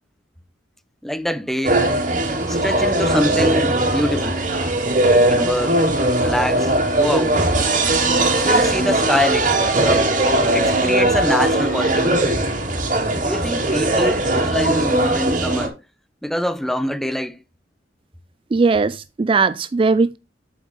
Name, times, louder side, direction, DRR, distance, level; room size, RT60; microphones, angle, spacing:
voice 1, 1.0-1.9 2.5-4.4 5.1-5.8 6.2-7.4 8.3-10.1 10.5-12.3 13.1-15.8 16.2-17.4, left 1 dB, ahead, 0.7 m, -25 dB
sound 1, 1.6-15.7, right 2 dB, 45° right, 3.0 m, -19 dB
voice 2, 18.5-20.2, right 4 dB, 30° right, 0.3 m, -18 dB
8.3 x 7.6 x 3.7 m
head